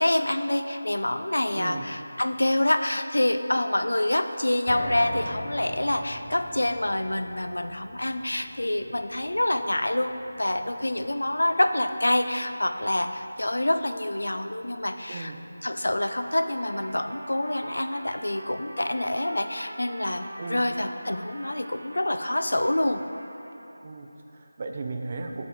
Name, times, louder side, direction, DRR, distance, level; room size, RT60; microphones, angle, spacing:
voice 1, 0.0-15.3 15.6-23.0, left 1 dB, 85° left, 8 dB, 0.4 m, -26 dB
voice 2, 1.5-1.9 15.1-15.4 20.4-20.6 23.8-25.5, right 3 dB, 35° right, 4 dB, 0.5 m, -36 dB
sound 1, 4.7-16.9 17.3-17.4 17.9-18.0, left 1 dB, 30° left, 0.8 m, -43 dB
Trumpet, 16.0-23.8, right 1 dB, 80° right, 0.6 m, -44 dB
6.8 x 6.6 x 3.8 m, 2.9 s
figure-of-eight pair, 170°, 0 cm